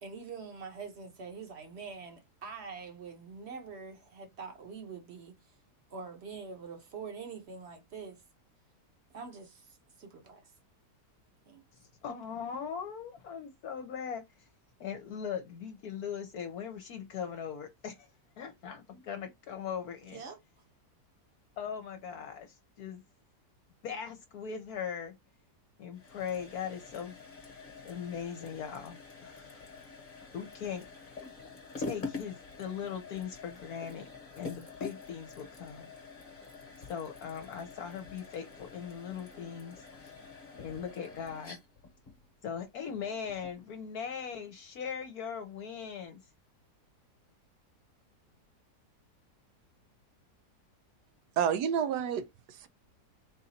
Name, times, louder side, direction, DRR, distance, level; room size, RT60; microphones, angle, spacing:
voice 1, 0.0-5.4 5.9-8.2 9.1-9.7 10.0-10.5 11.5-11.6 20.0-20.4, right 5 dB, 45° right, 1.2 m, -44 dB
voice 2, 11.8-14.5 14.8-18.1 18.4-20.2 21.6-23.0 23.8-25.2 25.8-27.2 27.8-29.6 30.3-30.9 31.8-34.1 34.3-35.9 36.9-40.1 40.6-41.6 42.4-46.2, left 7 dB, 65° left, 1.2 m, -40 dB
sound 1, 25.9-43.6, left 4 dB, 35° left, 1.2 m, -46 dB
voice 3, 51.4-52.7, right 8 dB, 80° right, 1.1 m, -30 dB
4.1 x 2.6 x 4.1 m
omnidirectional pair, 1.8 m